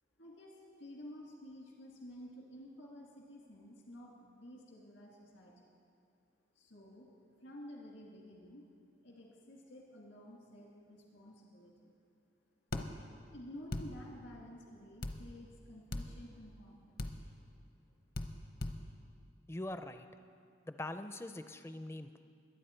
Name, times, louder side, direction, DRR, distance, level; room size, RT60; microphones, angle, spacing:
voice 1, 0.2-0.5 0.8-5.7 6.6-7.1 7.4-8.6 9.0-11.9 13.3-17.0, left 1 dB, 70° left, -2 dB, 2.1 m, -52 dB
sound 1, 12.7-12.9 13.7-13.9 15.0-15.2 15.9-16.1 17.0-17.1 18.1-18.3 18.6-18.8, left 2 dB, 50° left, 0.8 m, -37 dB
voice 2, 19.5-20.1 20.7-22.2, left 1 dB, 15° left, 9 dB, 0.4 m, -43 dB
22.0 x 9.2 x 4.4 m, 2.3 s
head